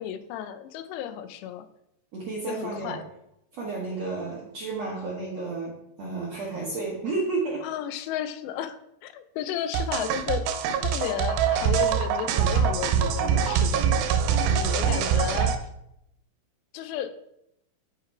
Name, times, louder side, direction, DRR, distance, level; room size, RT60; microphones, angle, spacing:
voice 1, 0.0-1.7 2.4-3.1 7.6-10.5 10.8-14.1 14.5-15.5 16.7-17.1, left 10 dB, 90° left, 10 dB, 2.8 m, -33 dB
voice 2, 2.1-3.0 3.5-7.7, right 3 dB, 70° right, -4 dB, 1.6 m, -32 dB
sound 1, 9.7-15.6, right 7 dB, 85° right, 2.7 m, -24 dB
9.0 x 4.8 x 4.6 m, 0.81 s
omnidirectional pair, 4.8 m